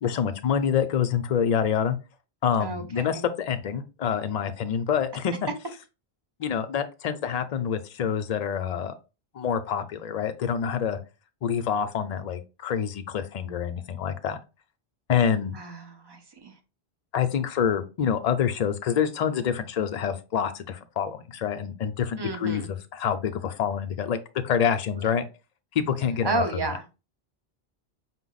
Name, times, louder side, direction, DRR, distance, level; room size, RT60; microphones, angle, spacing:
voice 1, 0.0-2.0 2.4-5.5 6.4-8.9 9.3-11.0 11.4-14.4 15.1-15.6 17.1-24.2 24.4-25.2 25.7-26.7, left 8 dB, 50° left, 8 dB, 0.5 m, -27 dB
voice 2, 2.6-3.2 15.5-16.5 22.2-22.7 26.2-26.8, right 3 dB, 30° right, 5 dB, 0.6 m, -31 dB
4.9 x 2.1 x 3.9 m, 0.30 s
omnidirectional pair, 1.0 m